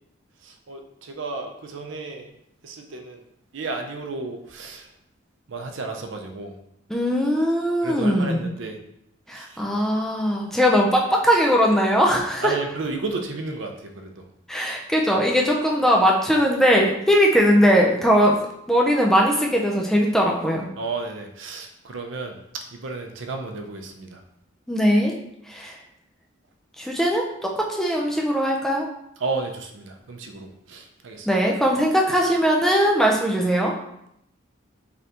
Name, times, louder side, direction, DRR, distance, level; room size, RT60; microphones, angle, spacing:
voice 1, 0.4-2.3 2.6-3.2 3.5-4.9 5.5-6.5 7.8-8.8 9.3-9.6 12.4-14.3 20.8-24.2 29.2-31.4, right 3 dB, 65° right, 4 dB, 0.5 m, -33 dB
voice 2, 6.9-8.5 9.3-12.5 14.5-18.4 18.7-20.7 24.7-25.1 25.5-25.8 26.8-28.9 31.3-33.7, equal, ahead, -1 dB, 0.4 m, -20 dB
3.8 x 3.3 x 2.8 m, 0.77 s
head